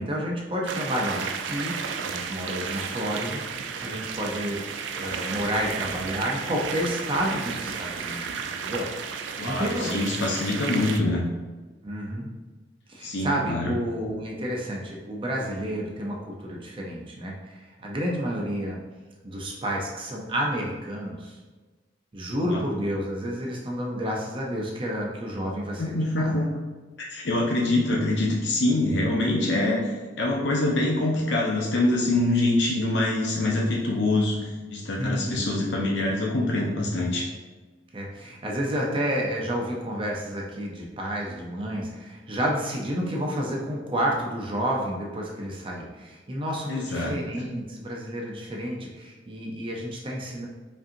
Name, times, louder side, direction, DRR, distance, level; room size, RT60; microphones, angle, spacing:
voice 1, 0.0-1.7 2.0-4.6 5.0-8.3 8.6-8.9 9.4-10.0 11.8-12.3 12.9-18.8 19.2-21.4 22.1-26.3 35.0-35.4 37.9-50.5, equal, 30° right, -2 dB, 0.6 m, -30 dB
sound 1, 0.7-11.0, right 6 dB, 85° right, 0.4 m, -33 dB
voice 2, 9.4-11.2 13.0-13.8 22.4-22.6 25.8-26.5 27.0-37.3 46.7-47.1, left 2 dB, 70° left, -2 dB, 0.6 m, -25 dB
5.1 x 2.7 x 2.6 m, 1.3 s
head